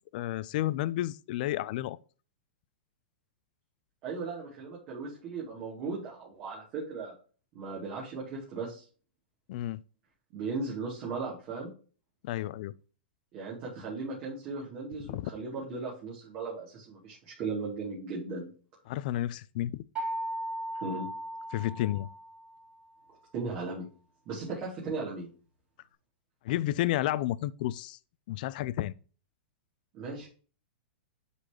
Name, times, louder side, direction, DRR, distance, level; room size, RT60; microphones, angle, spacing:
voice 1, 0.1-2.0 9.5-9.8 12.2-12.7 15.1-15.3 18.9-19.8 21.5-22.1 26.4-28.0 28.3-28.9, left 14 dB, 50° left, 0.4 m, -31 dB
voice 2, 4.0-7.1 7.5-8.8 10.3-11.7 13.3-18.5 20.8-21.1 23.3-23.8 24.3-25.3 29.9-30.3, right 4 dB, 35° right, 2.7 m, -37 dB
sound 1, 20.0-22.7, right 1 dB, 15° right, 2.4 m, -37 dB
10.0 x 4.2 x 3.0 m
hypercardioid pair, 150°, 6 cm